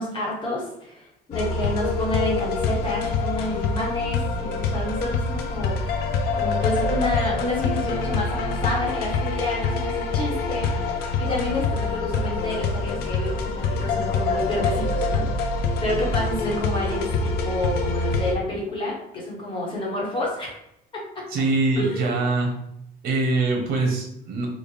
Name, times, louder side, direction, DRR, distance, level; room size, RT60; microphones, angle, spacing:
voice 1, 0.0-10.7 11.2-20.6 20.9-21.0 21.7-22.2, left 1 dB, 30° left, -4 dB, 1.3 m, -29 dB
sound 1, 1.3-18.3, left 3 dB, 70° left, 0.5 m, -25 dB
voice 2, 21.3-22.5 23.0-24.5, right 3 dB, 65° right, 1 dB, 1.1 m, -23 dB
3.8 x 2.5 x 3.2 m, 0.77 s
cardioid pair, 155°, 16 cm